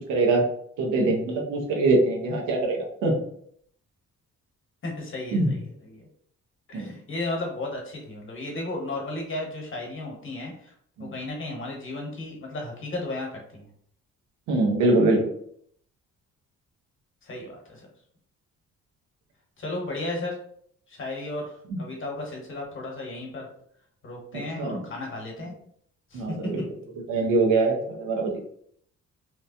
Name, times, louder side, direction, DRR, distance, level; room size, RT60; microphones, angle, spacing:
voice 1, 0.1-0.4 0.8-3.2 5.3-5.5 6.7-6.9 11.0-11.1 14.5-15.2 21.7-21.8 24.6-24.8 26.1-26.6 27.1-28.4, right 2 dB, 90° right, 0 dB, 0.8 m, -23 dB
voice 2, 4.8-6.1 6.7-10.7 11.0-13.7 17.2-17.9 19.6-20.4 20.9-21.5 21.8-23.5 24.0-25.5 26.1-26.2, left 2 dB, 40° left, 0 dB, 1.1 m, -34 dB
3.0 x 2.2 x 2.6 m, 0.65 s
cardioid pair, 90°, 30 cm